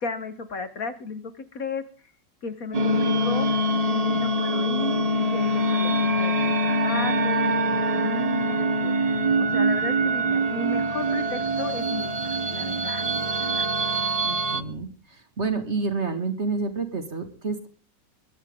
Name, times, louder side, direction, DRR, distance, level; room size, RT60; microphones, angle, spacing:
voice 1, 0.0-1.8 2.4-3.6 3.9-13.0 13.4-13.7, left 3 dB, 55° left, 12 dB, 1.6 m, -35 dB
sound 1, 2.7-14.6, right 1 dB, 70° right, 0.3 m, -24 dB
voice 2, 14.2-14.9 15.4-17.7, right 4 dB, 40° right, 8 dB, 2.3 m, -28 dB
22.0 x 12.0 x 3.8 m, 0.37 s
omnidirectional pair, 1.9 m